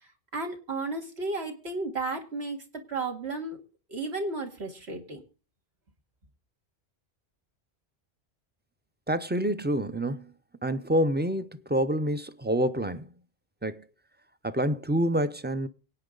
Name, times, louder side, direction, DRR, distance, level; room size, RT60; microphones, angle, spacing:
voice 1, 0.3-3.6 3.9-5.2, right 3 dB, 75° right, 2.4 m, -33 dB
voice 2, 9.1-10.3 10.6-13.1 13.6-13.8 14.4-15.7, right 1 dB, 15° right, 0.5 m, -27 dB
24.0 x 9.0 x 3.9 m
omnidirectional pair, 1.1 m